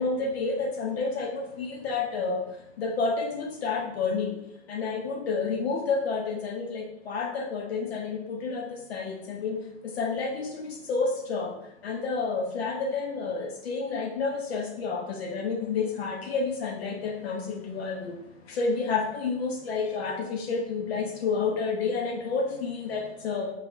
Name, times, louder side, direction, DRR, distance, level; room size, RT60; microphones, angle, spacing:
voice 1, 0.0-2.4 2.8-4.3 4.7-9.6 10.0-11.5 11.8-18.2 18.5-23.5, left 4 dB, 60° left, 0 dB, 0.8 m, -30 dB
4.7 x 3.1 x 2.5 m, 0.80 s
figure-of-eight pair, 105°, 35 cm